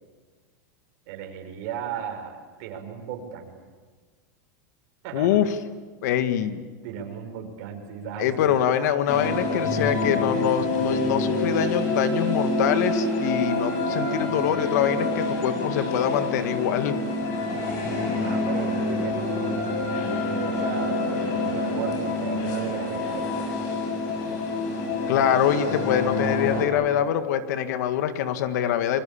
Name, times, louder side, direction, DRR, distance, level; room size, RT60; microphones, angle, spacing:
voice 1, 1.1-3.5 5.0-5.4 6.8-8.6 18.2-23.4, right 7 dB, 50° right, 4 dB, 5.4 m, -36 dB
voice 2, 5.1-5.5 6.0-6.7 8.2-17.0 25.1-29.0, left 10 dB, 60° left, 10 dB, 1.9 m, -24 dB
sound 1, 9.1-26.6, left 2 dB, 45° left, 7.1 m, -27 dB
28.5 x 23.5 x 8.8 m, 1.4 s
supercardioid pair, 160°, 10 cm